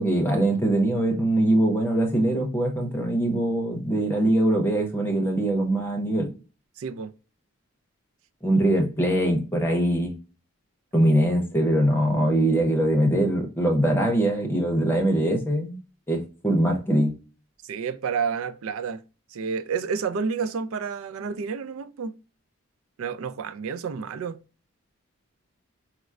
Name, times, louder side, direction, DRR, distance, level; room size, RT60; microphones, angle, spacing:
voice 1, 0.0-6.3 8.4-10.2 10.9-15.8 16.1-17.2, right 1 dB, 10° left, 0.7 m, -22 dB
voice 2, 6.8-7.1 17.6-19.0 19.3-22.2 23.0-24.4, right 6 dB, 75° right, 0.3 m, -30 dB
4.3 x 2.0 x 2.3 m
head